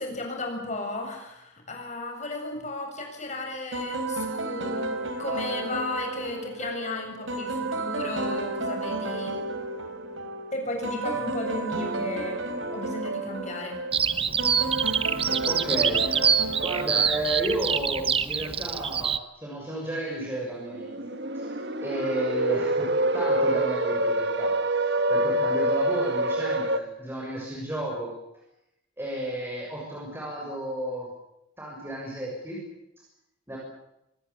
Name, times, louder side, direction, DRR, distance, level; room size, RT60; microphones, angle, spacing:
voice 1, 0.0-9.4 10.5-12.5 12.7-13.8, left 2 dB, 35° left, 3 dB, 7.4 m, -34 dB
sound 1, 3.7-17.9, right 2 dB, 85° right, 3.7 m, -32 dB
Bird vocalization bird call bird song, 13.9-19.2, right 7 dB, 30° right, 1.0 m, -25 dB
voice 2, 15.5-16.0 16.6-28.1 29.0-31.1 31.6-32.6 33.5-33.6, right 1 dB, 10° right, -3 dB, 6.6 m, -32 dB
sound 2, 20.6-26.8, right 1 dB, 60° right, 1.6 m, -26 dB
25.0 x 19.0 x 8.4 m, 0.84 s
head